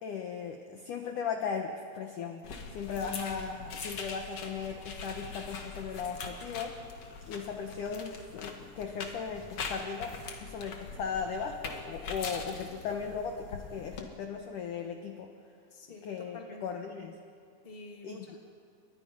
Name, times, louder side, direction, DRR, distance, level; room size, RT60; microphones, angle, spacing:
voice 1, 0.0-2.4 2.7-6.8 7.3-15.3 16.0-17.2 18.0-18.3, left 6 dB, 70° left, 4 dB, 2.0 m, -37 dB
sound 1, 2.4-14.0, left 4 dB, 50° left, 2.0 m, -42 dB
voice 2, 15.7-16.8 17.6-18.4, left 3 dB, 15° left, 0 dB, 2.0 m, -48 dB
29.5 x 24.0 x 5.6 m, 2.3 s
omnidirectional pair, 5.3 m